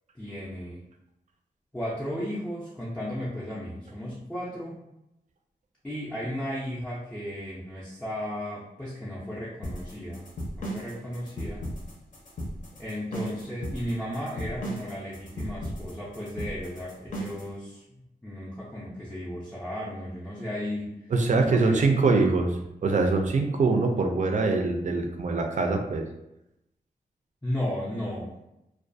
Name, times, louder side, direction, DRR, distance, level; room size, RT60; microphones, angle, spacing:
voice 1, 0.2-0.8 1.7-4.8 5.8-10.3 10.6-11.7 12.8-20.9 21.4-22.0 27.4-28.3, equal, 5° left, -8 dB, 0.5 m, -35 dB
sound 1, 9.6-17.5, equal, 55° left, 0.6 m, -36 dB
voice 2, 21.1-26.0, right 3 dB, 50° right, 3 dB, 0.4 m, -24 dB
2.4 x 2.2 x 2.6 m, 0.87 s
wide cardioid pair, 125°, 16 cm